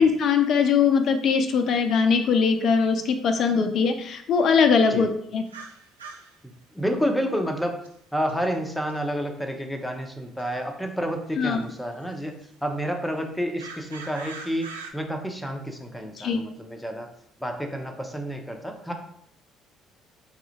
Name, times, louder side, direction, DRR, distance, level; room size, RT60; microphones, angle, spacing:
voice 1, 0.0-5.4 11.4-11.6 16.2-16.4, left 5 dB, 55° left, 7 dB, 0.5 m, -21 dB
sound 1, 5.5-6.3 7.8-7.9 8.3-8.4 8.9-9.0 10.4-10.5 11.6-11.7 13.6-14.9, right 4 dB, 85° right, 0.3 m, -41 dB
voice 2, 6.7-17.1 17.4-18.9, equal, 5° left, 4 dB, 0.7 m, -30 dB
4.0 x 2.3 x 3.1 m, 0.69 s
figure-of-eight pair, 50°, 0 cm